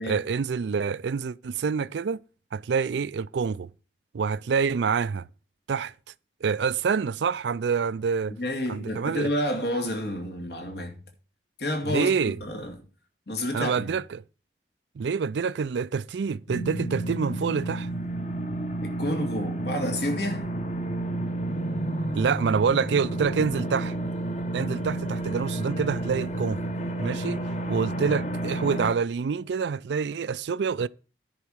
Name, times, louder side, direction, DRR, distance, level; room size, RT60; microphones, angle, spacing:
voice 1, 0.0-2.2 2.5-3.7 4.1-5.3 5.7-5.9 6.4-8.3 8.7-9.3 11.8-12.4 13.5-14.2 15.0-17.9 22.1-23.9 24.5-26.6 27.0-27.4 27.7-30.9, right 6 dB, 85° right, 0.4 m, -27 dB
voice 2, 8.4-11.0 11.6-12.8 13.3-13.9 18.8-20.5 27.8-28.1, left 1 dB, 70° left, 2.6 m, -30 dB
sound 1, 16.5-28.9, right 1 dB, 40° left, 1.2 m, -31 dB
10.5 x 4.6 x 7.8 m
head